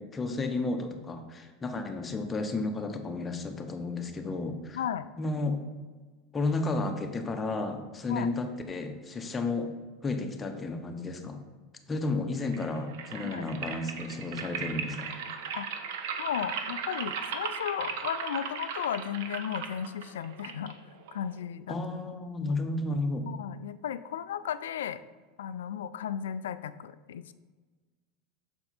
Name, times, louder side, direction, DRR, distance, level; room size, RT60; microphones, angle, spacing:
voice 1, 0.0-4.8 5.2-5.6 6.3-9.7 10.0-11.4 11.9-15.1 21.7-23.3, left 3 dB, 20° left, 5 dB, 0.9 m, -32 dB
voice 2, 4.8-5.1 8.1-8.3 13.2-13.5 15.5-15.8 16.2-20.8 21.1-21.8 23.3-25.0 25.4-27.3, left 9 dB, 85° left, 14 dB, 0.3 m, -35 dB
sound 1, 12.4-21.4, right 6 dB, 70° right, 0.7 m, -37 dB
6.8 x 4.3 x 4.2 m, 1.4 s
hypercardioid pair, 100°, 0 cm